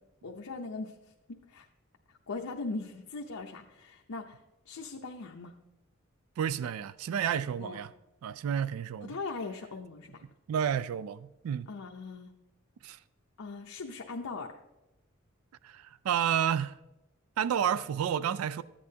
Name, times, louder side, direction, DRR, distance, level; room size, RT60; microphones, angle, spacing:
voice 1, 0.2-1.0 1.3-1.7 2.3-5.5 7.2-7.8 9.1-10.2 11.7-12.3 13.4-14.5, left 3 dB, 90° left, 0.7 m, -40 dB
voice 2, 6.4-7.9 8.2-9.2 10.5-11.7 12.8-13.0 15.6-16.8 17.4-18.6, right 8 dB, 85° right, 0.3 m, -30 dB
13.5 x 8.4 x 2.8 m
head